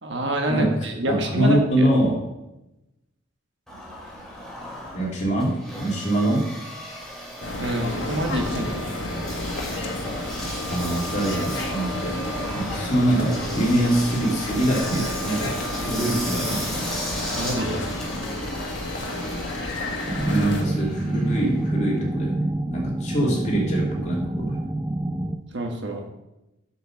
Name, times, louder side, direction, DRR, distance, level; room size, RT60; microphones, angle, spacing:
voice 1, 0.0-1.9 7.6-8.9 17.3-17.9 25.5-26.0, right 1 dB, 60° right, 3 dB, 1.4 m, -27 dB
voice 2, 1.1-2.2 4.9-6.4 10.7-12.2 12.5-15.5 15.8-16.8 20.2-22.4 22.7-24.6, right 1 dB, 35° left, -3 dB, 2.6 m, -24 dB
Engine, 3.7-22.1, equal, ahead, 2.3 m, -36 dB
sound 1, 7.4-20.6, left 1 dB, 65° left, 1.6 m, -31 dB
sound 2, 20.1-25.4, right 1 dB, 15° right, 0.5 m, -27 dB
7.9 x 6.2 x 6.5 m, 0.94 s
head